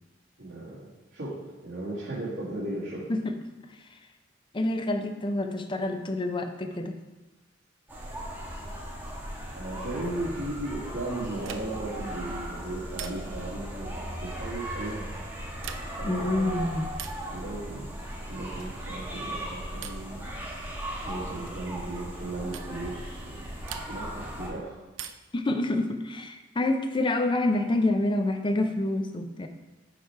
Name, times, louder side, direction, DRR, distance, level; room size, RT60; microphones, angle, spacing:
voice 1, 0.4-3.1 9.5-15.1 16.0-16.7 17.3-18.0 18.3-20.3 21.0-23.5 23.7-24.8, right 2 dB, 65° right, -10 dB, 2.0 m, -36 dB
voice 2, 4.5-7.0 16.1-16.9 25.3-29.5, left 2 dB, 25° left, 6 dB, 0.5 m, -27 dB
sound 1, 7.9-24.5, equal, 10° right, 1.3 m, -37 dB
sound 2, 11.4-11.9 12.9-13.5 15.5-16.1 16.9-17.3 18.6-18.9 19.8-20.2 21.5-21.7 22.5-22.8 23.7-24.2 24.9-25.4 26.9-27.6, right 9 dB, 85° right, 0.5 m, -43 dB
6.5 x 4.5 x 4.6 m, 1.1 s
head